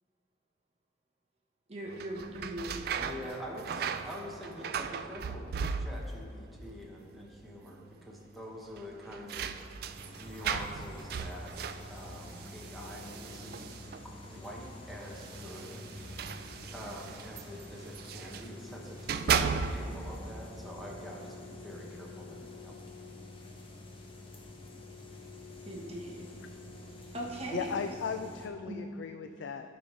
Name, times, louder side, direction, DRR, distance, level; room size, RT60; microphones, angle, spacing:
voice 1, 1.7-2.9 3.2-3.3 25.7-26.3 27.1-27.7 28.7-28.8, right 1 dB, 35° right, -1 dB, 1.0 m, -39 dB
sound 1, 1.9-6.3 6.6-7.3 7.6-7.7 8.7-14.2 15.0-18.5 18.9-20.1, right 6 dB, 55° right, 0.3 m, -36 dB
voice 2, 3.0-15.9 16.7-22.8, equal, ahead, -3 dB, 1.0 m, -46 dB
sound 2, 9.9-28.5, left 2 dB, 30° left, 0.9 m, -48 dB
voice 3, 27.5-29.8, left 6 dB, 75° left, 7 dB, 0.3 m, -37 dB
14.5 x 5.3 x 3.2 m, 2.4 s
head